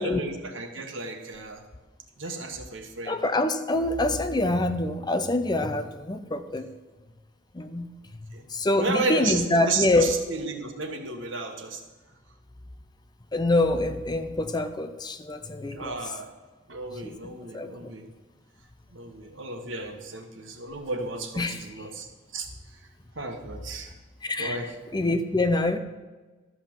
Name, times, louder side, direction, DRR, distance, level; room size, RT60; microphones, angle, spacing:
voice 1, 0.0-1.6 2.2-3.2 8.3-8.5 8.8-11.8 15.7-16.3 16.7-18.0 18.9-22.1 22.3-22.5 23.1-23.9 24.4-24.7, right 3 dB, 85° right, 5 dB, 1.5 m, -33 dB
voice 2, 3.1-6.7 7.5-7.9 8.2-10.1 13.3-16.0 16.9-17.9 21.4-21.6 24.2-25.8, left 2 dB, 20° left, 9 dB, 0.6 m, -26 dB
12.5 x 5.7 x 7.2 m, 1.3 s
head